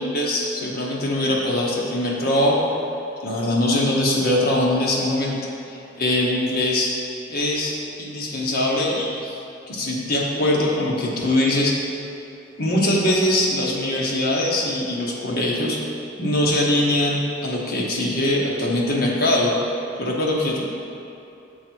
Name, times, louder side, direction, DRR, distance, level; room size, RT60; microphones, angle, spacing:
voice 1, 0.0-2.6 3.2-5.4 5.7-6.9 7.3-7.7 8.0-9.4 9.7-11.7 12.6-15.8 16.2-19.5 20.0-20.6, left 1 dB, 55° left, -4 dB, 1.2 m, -22 dB
6.8 x 4.6 x 4.6 m, 2.7 s
head